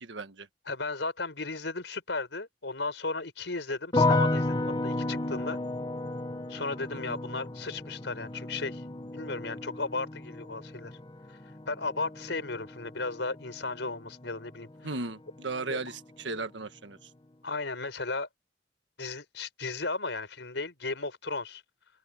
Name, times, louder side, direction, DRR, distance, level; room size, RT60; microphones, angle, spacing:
voice 1, 0.0-0.5 7.1-7.2 14.8-17.1, right 3 dB, 85° right, 1.5 m, -36 dB
voice 2, 0.7-5.6 6.5-8.8 9.1-11.0 11.3-11.4 11.7-14.9 15.7-15.8 17.4-18.3 19.0-21.6, left 3 dB, 80° left, 4.7 m, -35 dB
sound 1, 3.9-15.0 15.3-16.0, left 2 dB, 25° left, 1.2 m, -33 dB
head